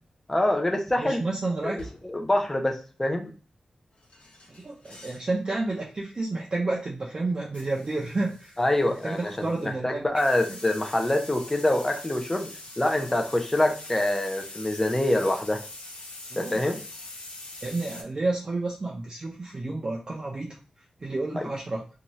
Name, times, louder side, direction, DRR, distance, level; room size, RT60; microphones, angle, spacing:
voice 1, 0.3-1.2 1.6-1.8 2.1-3.3 8.6-12.5 12.8-15.6 16.4-16.8 21.4-21.5, left 1 dB, 15° left, 4 dB, 0.5 m, -25 dB
voice 2, 1.0-1.8 4.5-8.6 8.9-10.1 16.3-16.6 17.6-20.6 21.0-21.8, right 2 dB, 40° right, -3 dB, 0.5 m, -30 dB
sound 1, 1.2-1.3 1.8-2.3 4.0-5.3 5.7-5.9 7.5-9.7 10.1-18.0, left 2 dB, 65° left, 0.8 m, -44 dB
2.7 x 2.3 x 3.0 m, 0.37 s
wide cardioid pair, 120°, 2 cm